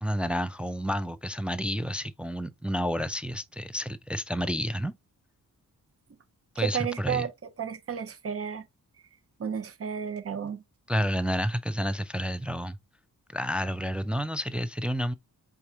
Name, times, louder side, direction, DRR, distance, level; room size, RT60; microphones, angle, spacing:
voice 1, 0.0-4.9 6.6-7.3 10.9-12.8 13.3-15.1, equal, 5° right, 0.3 m, -30 dB
voice 2, 6.6-7.3 7.6-8.6 9.4-10.6, right 8 dB, 40° right, 0.7 m, -32 dB
4.6 x 3.5 x 2.7 m
cardioid pair, 95°, 35 cm